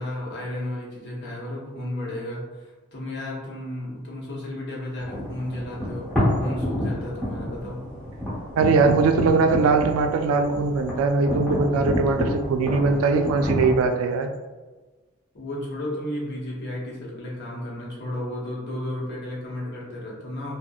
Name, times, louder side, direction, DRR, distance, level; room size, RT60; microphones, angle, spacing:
voice 1, 0.0-7.8 15.3-20.5, left 1 dB, 55° left, -5 dB, 0.7 m, -33 dB
sound 1, 5.0-13.8, equal, 5° left, 0.8 m, -29 dB
voice 2, 8.6-14.3, right 4 dB, 85° right, 7 dB, 0.3 m, -21 dB
2.7 x 2.0 x 2.3 m, 1.2 s
head